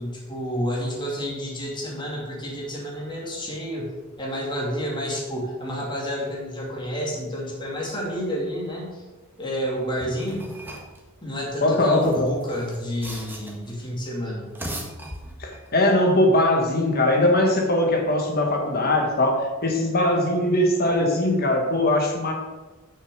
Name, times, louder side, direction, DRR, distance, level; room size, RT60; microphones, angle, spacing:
voice 1, 0.0-3.9 4.2-9.0 9.4-10.5 11.2-14.5, equal, 20° left, -3 dB, 2.6 m, -30 dB
sound 1, 10.0-11.0 11.9-13.7 14.4-15.7, right 1 dB, 10° right, 1.5 m, -38 dB
voice 2, 11.6-12.3 15.4-22.3, left 1 dB, 45° left, 2 dB, 1.6 m, -21 dB
6.7 x 6.5 x 6.8 m, 1.2 s
head